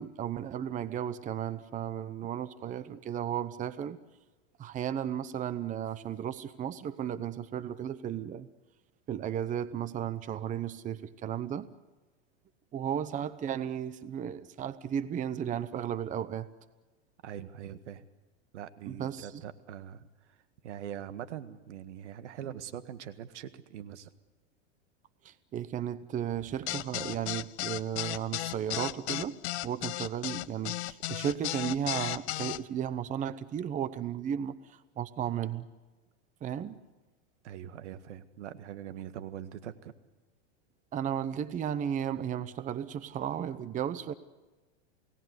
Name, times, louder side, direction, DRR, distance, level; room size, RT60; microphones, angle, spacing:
voice 1, 0.0-4.0 4.6-8.5 9.1-11.7 12.7-16.5 18.9-19.3 25.2-35.7 36.4-36.8 40.9-44.1, right 9 dB, 20° right, 15 dB, 0.9 m, -34 dB
voice 2, 17.2-18.0 18.5-24.1 37.4-39.9, right 10 dB, 80° right, 11 dB, 1.8 m, -43 dB
sound 1, 26.7-32.6, left 17 dB, 70° left, 0.8 m, -34 dB
29.0 x 18.5 x 8.1 m, 1.2 s
supercardioid pair, 130°, 35 cm